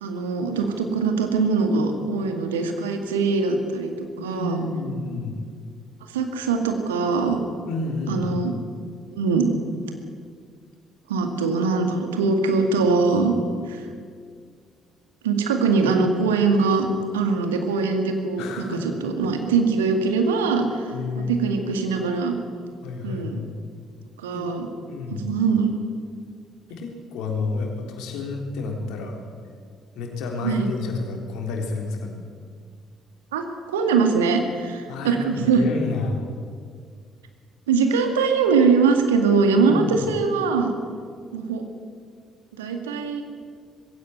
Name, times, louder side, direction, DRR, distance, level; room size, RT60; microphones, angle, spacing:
voice 1, 0.0-4.6 6.1-7.4 8.1-8.5 9.1-9.5 11.1-13.3 13.7-13.8 15.2-16.9 17.1-22.3 23.0-23.4 24.2-24.7 25.2-25.8 30.4-30.7 33.3-33.4 33.7-35.6 37.7-40.7 41.3-41.6 42.6-43.2, right 4 dB, 75° right, 5 dB, 2.1 m, -22 dB
voice 2, 4.2-5.3 7.7-8.4 18.4-18.9 20.9-21.3 22.8-23.5 24.3-24.5 24.9-25.3 26.7-29.2 30.0-32.2 34.9-36.2 39.7-40.0, left 3 dB, 60° left, 2 dB, 3.8 m, -30 dB
20.0 x 16.5 x 9.4 m, 2.1 s
figure-of-eight pair, 45°, 0 cm